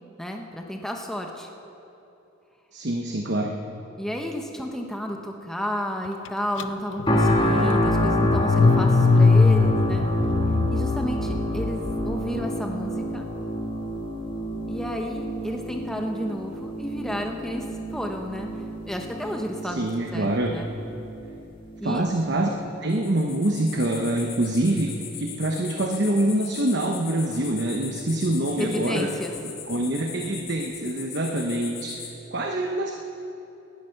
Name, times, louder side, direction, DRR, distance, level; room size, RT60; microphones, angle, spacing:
voice 1, 0.2-1.5 4.0-10.1 10.7-13.3 14.7-17.7 17.9-18.5 18.9-20.7 21.8-22.0 28.6-29.3, equal, ahead, 2 dB, 1.0 m, -32 dB
voice 2, 2.7-3.5 19.7-20.6 21.8-22.5 22.8-29.1 29.4-32.9, right 1 dB, 55° right, 2 dB, 1.0 m, -25 dB
Car / Engine starting, 6.6-6.7 7.0-12.2, left 4 dB, 65° left, 0.5 m, -22 dB
sound 1, 7.1-22.1 22.6-22.7, left 1 dB, 25° left, 1.8 m, -27 dB
sound 2, 22.9-32.1, left 7 dB, 50° left, 2.1 m, -40 dB
18.5 x 10.5 x 6.6 m, 2.9 s
head